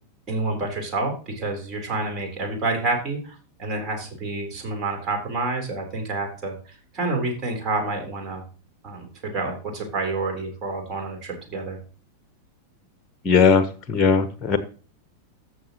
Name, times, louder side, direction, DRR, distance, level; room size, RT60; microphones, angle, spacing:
voice 1, 0.3-6.5 6.9-8.4 8.8-11.8, right 2 dB, 30° right, 2 dB, 3.7 m, -28 dB
voice 2, 13.2-14.6, left 5 dB, 25° left, 12 dB, 1.0 m, -18 dB
14.5 x 6.4 x 3.0 m, 0.37 s
figure-of-eight pair, 90°, 0 cm